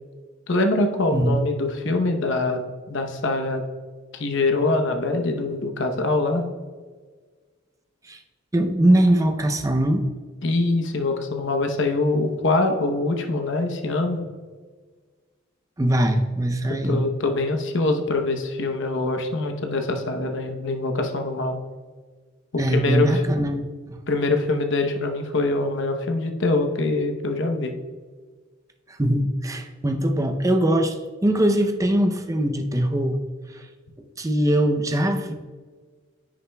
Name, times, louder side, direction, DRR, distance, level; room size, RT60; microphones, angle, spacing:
voice 1, 0.5-3.6 4.1-6.5 10.4-14.2 16.9-21.6 22.7-23.2 24.1-27.7, left 2 dB, 60° left, 5 dB, 0.9 m, -24 dB
voice 2, 1.1-1.4 8.1-8.2 8.5-10.0 15.8-17.0 22.6-24.0 29.0-31.0 31.2-33.2 33.5-33.6 34.2-35.3, right 1 dB, 15° right, 6 dB, 0.6 m, -21 dB
10.0 x 7.2 x 2.3 m, 1.5 s
head